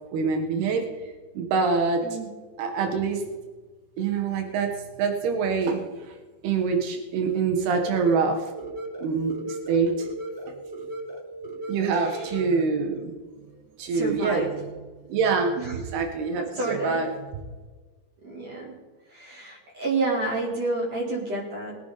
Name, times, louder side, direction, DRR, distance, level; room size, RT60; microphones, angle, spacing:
voice 1, 0.1-0.8 1.4-2.0 2.6-3.2 4.0-4.7 5.0-5.8 6.4-8.5 9.0-10.1 11.7-13.1 13.4-13.5 13.8-14.5 15.1-15.6 15.9-17.1, right 5 dB, 85° right, 4 dB, 3.6 m, -25 dB
sound 1, 7.8-12.8, right 1 dB, 20° right, 1.4 m, -37 dB
voice 2, 11.9-12.3 13.9-14.5 15.6-15.8 16.4-17.0 18.2-18.7 19.1-21.8, right 2 dB, 40° right, -4 dB, 5.1 m, -30 dB
22.5 x 9.5 x 4.2 m, 1.3 s
omnidirectional pair, 4.5 m